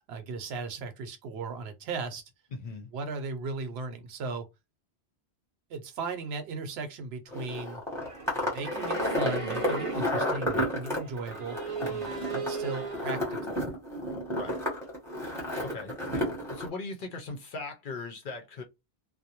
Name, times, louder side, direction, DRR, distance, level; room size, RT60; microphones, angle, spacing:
voice 1, 0.0-2.2 2.9-4.5 5.7-7.8 8.3-11.6 12.3-13.6, right 4 dB, 75° right, 0.8 m, -37 dB
voice 2, 2.5-2.9 11.8-12.1 14.4-14.6 15.6-15.9 16.5-18.6, left 3 dB, 60° left, 0.7 m, -39 dB
sound 1, 7.3-16.7, left 1 dB, 5° left, 0.9 m, -32 dB
sound 2, 7.9-10.4 10.9-13.2, right 4 dB, 35° right, 0.7 m, -37 dB
2.5 x 2.0 x 2.7 m
omnidirectional pair, 1.1 m